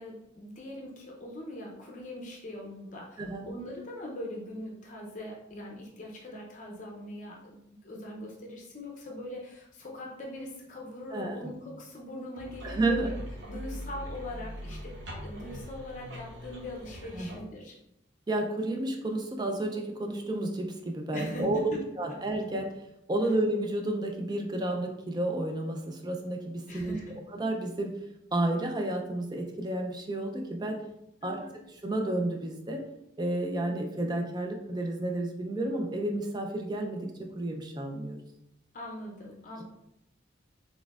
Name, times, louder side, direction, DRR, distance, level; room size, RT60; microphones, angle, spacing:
voice 1, 0.0-13.1 13.5-17.8 21.1-21.8 26.7-27.2 31.2-31.6 38.7-39.6, left 1 dB, 40° left, -1 dB, 0.6 m, -41 dB
voice 2, 11.1-11.4 12.6-13.1 17.1-17.3 18.3-22.7 23.1-27.0 27.3-28.0 28.3-30.8 31.2-31.4 31.8-32.8 33.2-38.2 39.6-39.7, right 1 dB, 20° right, 3 dB, 0.4 m, -31 dB
sound 1, 12.3-17.4, equal, 65° right, 1.0 m, -41 dB
4.1 x 3.4 x 2.4 m, 0.81 s
head